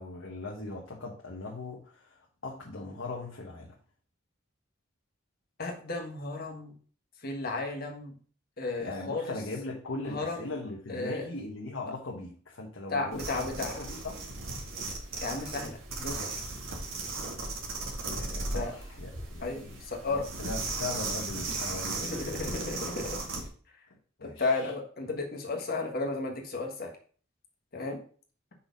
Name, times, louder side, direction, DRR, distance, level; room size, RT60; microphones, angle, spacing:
voice 1, 0.0-3.7 8.8-14.3 18.0-22.1 24.2-24.7, left 2 dB, 80° left, -1 dB, 1.1 m, -40 dB
voice 2, 5.6-6.7 7.2-8.1 8.6-9.3 10.0-10.5 10.9-11.3 12.9-13.8 15.2-16.3 18.5-18.7 19.4-20.3 22.0-23.2 24.2-26.9 27.7-28.0, left 3 dB, 50° left, 2 dB, 1.5 m, -34 dB
sound 1, 13.1-23.5, right 3 dB, 85° right, 1.8 m, -36 dB
5.5 x 4.2 x 5.3 m, 0.43 s
head